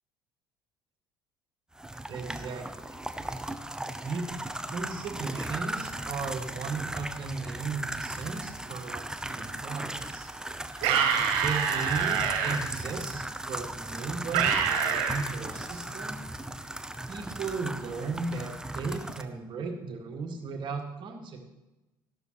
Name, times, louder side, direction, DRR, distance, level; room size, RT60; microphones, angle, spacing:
sound 1, 1.8-19.2, right 1 dB, 5° right, 0.8 m, -37 dB
voice 1, 2.1-3.0 4.0-10.3 11.4-16.2 17.1-21.4, right 4 dB, 45° right, 3 dB, 2.0 m, -36 dB
sound 2, 10.8-12.6 14.3-15.2, right 7 dB, 60° right, 1.8 m, -26 dB
14.0 x 12.0 x 3.1 m, 1.1 s
figure-of-eight pair, 60°, 11 cm